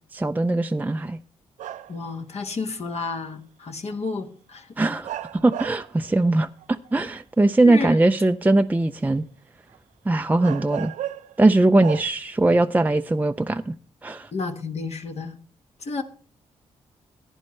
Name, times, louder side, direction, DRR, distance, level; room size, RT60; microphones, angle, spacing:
voice 1, 0.1-1.2 4.8-9.2 10.1-10.9 11.4-13.7 14.0-14.3, right 2 dB, 15° right, 0.4 m, -20 dB
sound 1, 1.6-2.1 3.9-4.0 5.0-6.0 6.6-7.2 9.7-9.8 10.4-11.4 11.8-12.0, right 12 dB, 75° right, 0.6 m, -34 dB
voice 2, 1.9-4.8 7.6-8.0 14.3-15.4 15.8-16.0, left 3 dB, 55° left, 1.4 m, -31 dB
14.5 x 9.9 x 3.2 m
supercardioid pair, 50°, 13 cm